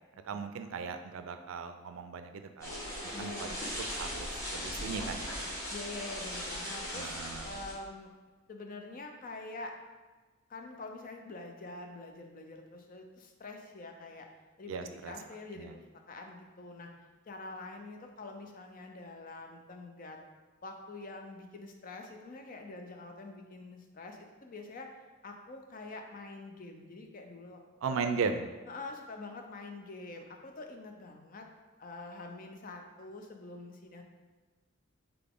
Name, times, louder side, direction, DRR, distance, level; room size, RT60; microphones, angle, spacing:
voice 1, 0.3-2.8 3.0-3.5 4.0-5.4 6.9-7.5 14.7-15.1 15.6-15.7 27.8-28.5, right 5 dB, 80° right, 8 dB, 0.4 m, -37 dB
sound 1, 2.6-7.7, equal, 15° left, 1.4 m, -38 dB
voice 2, 3.1-3.6 5.7-8.1 8.5-9.8 10.5-14.3 14.6-16.9 17.3-20.2 20.6-24.9 25.2-28.1 28.7-31.5 31.8-34.0, left 2 dB, 45° left, 3 dB, 0.5 m, -46 dB
3.9 x 3.3 x 3.7 m, 1.3 s
head